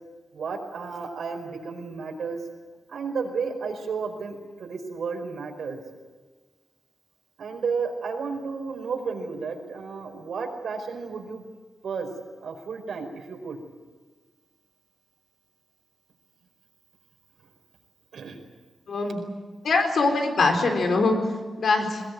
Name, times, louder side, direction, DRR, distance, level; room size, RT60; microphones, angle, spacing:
voice 1, 0.3-2.4 2.9-5.8 7.4-11.4 11.8-12.1 12.4-13.6 18.1-18.4, right 5 dB, 80° right, 3 dB, 4.9 m, -32 dB
voice 2, 18.9-19.2 19.6-21.2 21.6-22.0, left 3 dB, 65° left, 4 dB, 4.1 m, -22 dB
21.5 x 21.5 x 9.5 m, 1.4 s
wide cardioid pair, 150°, 0 cm